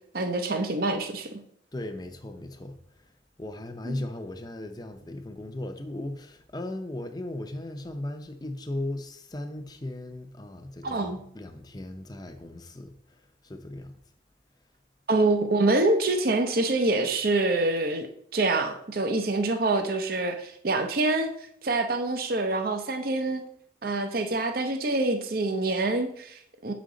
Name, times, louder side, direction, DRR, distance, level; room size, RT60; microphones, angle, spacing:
voice 1, 0.1-1.3 3.9-4.0 10.8-11.2 15.1-18.1 18.3-21.3 21.6-23.4 23.8-26.7, right 2 dB, 50° right, 0.6 m, -26 dB
voice 2, 1.7-2.8 3.4-14.0, left 1 dB, 20° left, 0.6 m, -37 dB
7.2 x 5.1 x 3.8 m
head